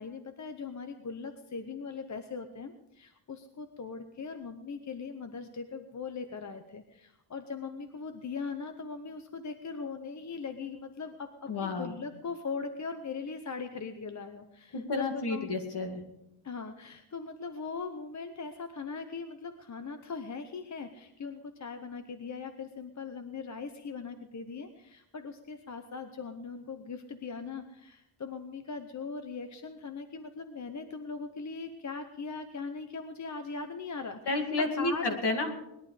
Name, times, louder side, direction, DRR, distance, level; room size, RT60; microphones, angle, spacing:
voice 1, 0.0-15.5 16.4-34.5 34.8-35.2, left 5 dB, 35° left, 8 dB, 0.8 m, -40 dB
voice 2, 11.5-11.9 14.7-16.0 34.3-35.5, left 2 dB, 55° left, 4 dB, 2.3 m, -31 dB
19.5 x 11.5 x 4.9 m, 0.89 s
wide cardioid pair, 165°, 48 cm